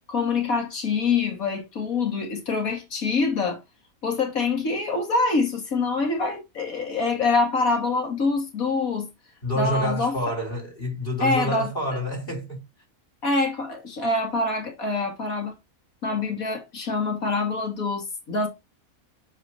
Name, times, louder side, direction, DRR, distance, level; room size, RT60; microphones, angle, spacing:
voice 1, 0.1-3.6 4.0-9.1 9.6-10.1 11.2-11.7 13.2-15.5 16.0-18.5, left 3 dB, 75° left, 2.5 m, -25 dB
voice 2, 9.4-12.6, equal, 40° left, 3.9 m, -28 dB
8.7 x 4.2 x 2.9 m
omnidirectional pair, 1.5 m